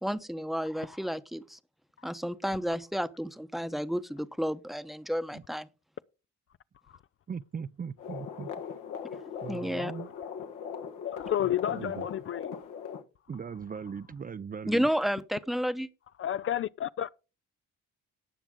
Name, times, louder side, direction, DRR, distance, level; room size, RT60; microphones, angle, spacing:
voice 1, 0.0-1.6 2.0-5.7 9.5-9.9 14.7-15.9, equal, ahead, 0.9 m, -31 dB
voice 2, 7.3-8.7 9.4-10.1 11.7-12.1 13.3-14.9, right 6 dB, 30° right, 0.5 m, -39 dB
sound 1, 8.0-13.0, left 7 dB, 80° left, 1.5 m, -40 dB
voice 3, 11.0-12.5 16.2-17.2, left 11 dB, 45° left, 0.4 m, -31 dB
18.0 x 6.1 x 3.7 m
cardioid pair, 90°, 30 cm